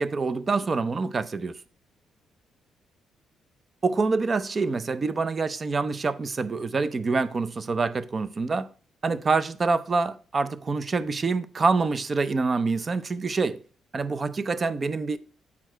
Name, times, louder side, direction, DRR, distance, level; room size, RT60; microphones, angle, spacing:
voice 1, 0.0-1.6 3.8-8.7 9.0-13.6 13.9-15.2, right 4 dB, 35° right, 0.5 m, -26 dB
8.4 x 4.6 x 4.4 m
cardioid pair, 90°, 0 cm